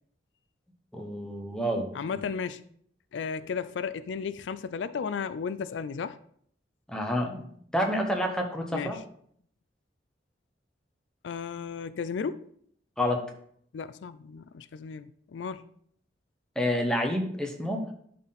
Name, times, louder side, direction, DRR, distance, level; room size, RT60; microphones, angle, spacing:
voice 1, 0.9-2.2 6.9-7.5 7.7-9.0 13.0-13.2 16.5-17.8, equal, 5° left, 1.1 m, -29 dB
voice 2, 1.9-2.6 3.1-6.2 8.7-9.0 11.2-12.5 13.7-15.7, left 6 dB, 85° left, 0.4 m, -34 dB
11.5 x 4.3 x 4.0 m
head